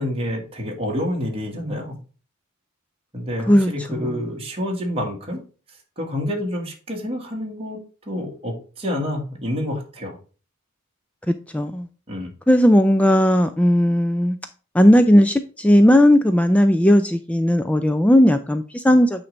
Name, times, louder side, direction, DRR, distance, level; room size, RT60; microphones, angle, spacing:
voice 1, 0.0-2.0 3.1-5.4 6.0-10.2 12.1-12.3, left 1 dB, 25° right, 1.7 m, -28 dB
voice 2, 3.5-4.2 11.3-11.9 12.5-14.4 14.7-19.2, equal, 5° left, 0.3 m, -16 dB
8.6 x 3.2 x 5.1 m
head